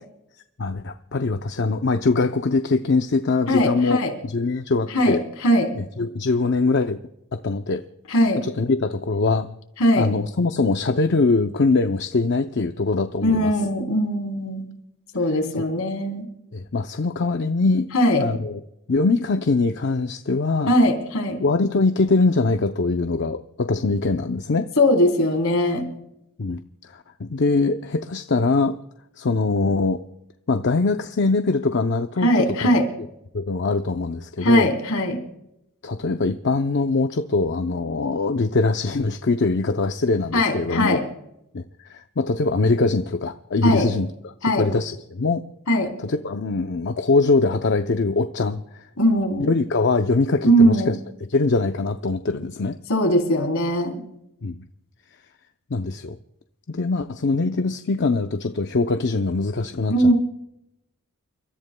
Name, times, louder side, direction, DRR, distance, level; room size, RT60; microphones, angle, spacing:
voice 1, 0.6-4.0 4.2-5.2 5.8-7.0 7.3-7.8 8.4-9.6 10.0-13.5 16.5-17.9 18.2-18.6 18.9-20.8 21.4-24.7 26.4-26.6 26.9-28.8 29.2-30.0 30.5-32.3 32.6-32.7 33.3-34.7 35.8-41.0 41.5-41.6 41.9-44.1 44.6-45.4 46.0-48.8 49.4-51.0 51.3-52.8 54.4-54.6 55.7-56.2 56.7-59.9, left 3 dB, 50° left, 7 dB, 0.6 m, -22 dB
voice 2, 3.5-4.1 4.9-5.7 8.1-8.4 9.8-10.1 13.2-14.7 15.1-16.3 17.9-18.2 20.7-21.4 24.8-25.9 32.2-32.8 34.4-35.2 40.3-41.0 43.6-43.9 44.4-44.7 45.7-45.9 49.0-49.5 50.4-50.9 52.9-54.0 59.9-60.1, equal, 70° left, 3 dB, 3.4 m, -20 dB
30.0 x 14.0 x 2.2 m, 0.83 s
head